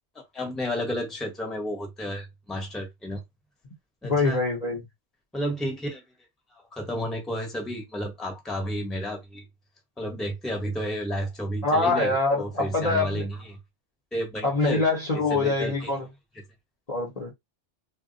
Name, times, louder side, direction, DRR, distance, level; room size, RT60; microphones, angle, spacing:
voice 1, 0.1-3.2 4.0-4.4 5.3-6.0 6.5-9.4 10.0-13.6 14.1-14.8 15.3-15.9, equal, ahead, 0.7 m, -32 dB
voice 2, 4.0-4.8 11.6-13.3 14.4-16.1 16.9-17.3, left 3 dB, 40° left, 0.7 m, -24 dB
2.1 x 2.1 x 3.7 m
omnidirectional pair, 1.2 m